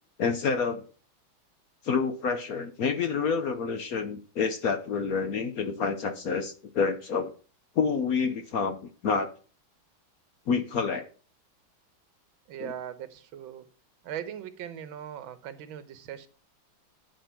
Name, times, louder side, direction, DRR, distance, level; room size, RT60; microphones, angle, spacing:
voice 1, 0.2-0.8 1.8-7.3 7.8-9.3 10.5-11.1 12.6-12.7, left 5 dB, 65° left, 0.9 m, -28 dB
voice 2, 12.5-13.7 14.0-16.3, right 9 dB, 75° right, 1.6 m, -39 dB
10.0 x 4.7 x 5.8 m
omnidirectional pair, 2.3 m